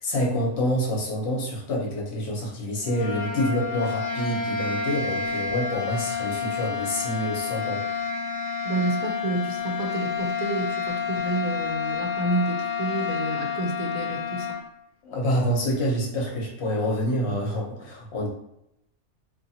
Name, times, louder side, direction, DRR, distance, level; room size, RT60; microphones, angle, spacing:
voice 1, 0.0-7.8 15.0-18.3, equal, 55° left, -3 dB, 1.1 m, -27 dB
sound 1, 2.8-14.7, left 6 dB, 75° left, 1.0 m, -29 dB
voice 2, 8.6-14.6, right 2 dB, 85° right, 2 dB, 1.1 m, -29 dB
2.7 x 2.5 x 2.7 m, 0.79 s
omnidirectional pair, 1.5 m